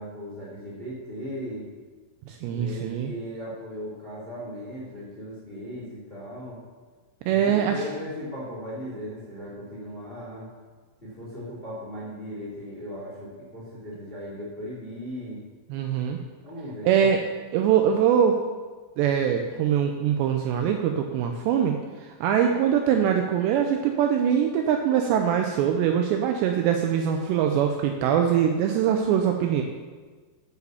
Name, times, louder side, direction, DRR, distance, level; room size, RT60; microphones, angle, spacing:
voice 1, 0.0-1.6 2.5-6.6 7.3-10.5 11.0-15.4 16.4-17.1, equal, 15° left, -6 dB, 3.0 m, -37 dB
voice 2, 2.3-3.1 7.3-7.8 15.7-16.2 16.9-17.2 17.5-18.4 19.0-29.6, right 8 dB, 80° right, 4 dB, 2.6 m, -23 dB
9.7 x 8.4 x 6.9 m, 1.4 s
omnidirectional pair, 5.5 m